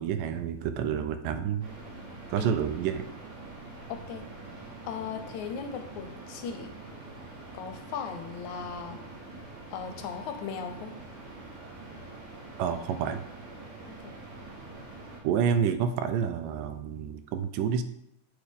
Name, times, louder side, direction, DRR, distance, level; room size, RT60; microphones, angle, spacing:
voice 1, 0.0-1.7 2.3-3.1 12.6-13.2 15.2-17.8, right 7 dB, 85° right, 9 dB, 2.3 m, -29 dB
sound 1, 1.6-15.2, right 2 dB, 65° right, 3.7 m, -45 dB
voice 2, 3.9-4.3 4.9-6.7 7.5-9.0 9.7-11.0 14.0-14.1, left 6 dB, 75° left, 6 dB, 2.0 m, -37 dB
8.5 x 8.1 x 3.6 m, 0.79 s
omnidirectional pair, 3.8 m